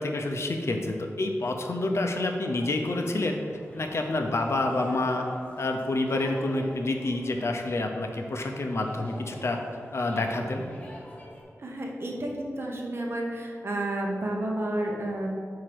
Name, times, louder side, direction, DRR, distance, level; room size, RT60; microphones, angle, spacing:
voice 1, 0.0-3.4 3.7-5.2 5.6-9.6 9.9-10.6, left 2 dB, 60° left, 3 dB, 0.7 m, -28 dB
sound 1, 2.4-11.4, equal, 25° left, 1.2 m, -46 dB
voice 2, 11.6-15.3, right 1 dB, 50° right, 0 dB, 1.0 m, -31 dB
4.7 x 4.6 x 6.0 m, 2.2 s
wide cardioid pair, 95°, 5 cm